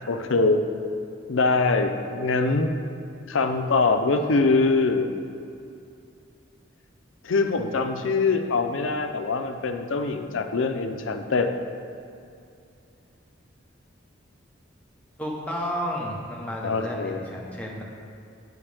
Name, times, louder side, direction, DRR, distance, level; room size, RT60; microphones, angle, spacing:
voice 1, 0.1-0.6 1.3-2.7 3.3-5.1 7.2-11.5 16.6-17.2, left 3 dB, 85° left, 7 dB, 0.6 m, -23 dB
voice 2, 15.2-17.8, equal, 5° left, -3 dB, 0.9 m, -32 dB
8.7 x 6.3 x 3.4 m, 2.5 s
head